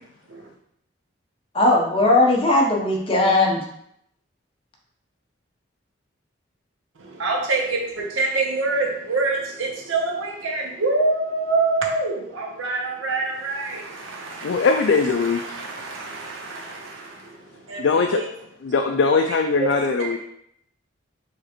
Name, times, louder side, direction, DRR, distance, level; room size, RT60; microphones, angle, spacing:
voice 1, 1.5-3.6, left 2 dB, 25° left, -1 dB, 0.8 m, -18 dB
voice 2, 7.0-18.2 19.6-19.7 20.0-20.2, right 3 dB, 85° right, 0 dB, 0.8 m, -26 dB
voice 3, 14.4-15.5 17.8-18.2 18.6-20.2, left 4 dB, 70° left, 4 dB, 0.3 m, -20 dB
4.9 x 3.2 x 3.0 m, 0.73 s
head